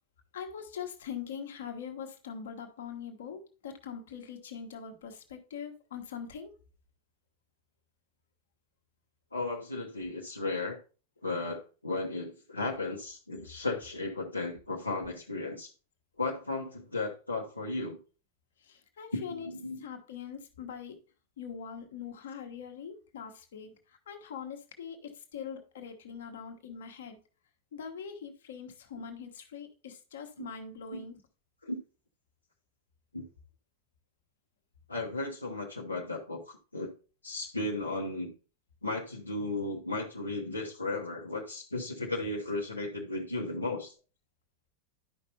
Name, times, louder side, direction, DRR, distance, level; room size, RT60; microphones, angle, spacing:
voice 1, 0.3-6.5 18.6-19.5 19.8-21.0 21.4-27.2 27.7-31.2, left 7 dB, 60° left, 1.3 m, -42 dB
voice 2, 9.3-10.8 11.2-15.7 16.2-18.0 19.1-19.8 30.4-30.5 30.9-31.0 31.6-31.8 33.1-33.3 34.9-36.9 37.2-38.3 38.8-43.9, left 2 dB, 80° left, 1.0 m, -35 dB
11.5 x 5.3 x 2.8 m
figure-of-eight pair, 90°, 0 cm